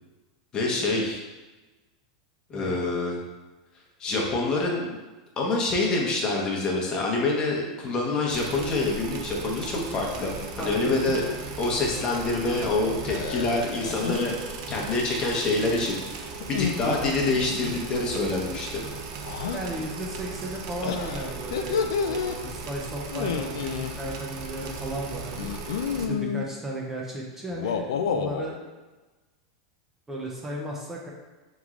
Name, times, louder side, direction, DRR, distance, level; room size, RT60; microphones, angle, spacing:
voice 1, 0.5-1.2 2.5-3.2 4.0-4.8 5.4-10.3 10.6-11.2 11.6-14.4 14.7-16.0 16.5-18.8, left 2 dB, 30° left, -2 dB, 0.9 m, -26 dB
sound 1, 8.3-26.1, right 4 dB, 60° right, 0.6 m, -37 dB
sound 2, 10.1-10.5 10.8-11.4 13.1-14.3 16.4-17.8 19.2-19.6 20.8-22.4 23.1-23.9 25.4-26.5 27.5-28.5, left 6 dB, 85° left, 0.3 m, -30 dB
voice 2, 10.6-10.9 12.0-12.1 19.5-25.5 26.1-28.6 30.1-31.1, right 1 dB, 15° right, -2 dB, 0.6 m, -35 dB
3.5 x 3.1 x 3.6 m, 1.2 s
supercardioid pair, 125°, 3 cm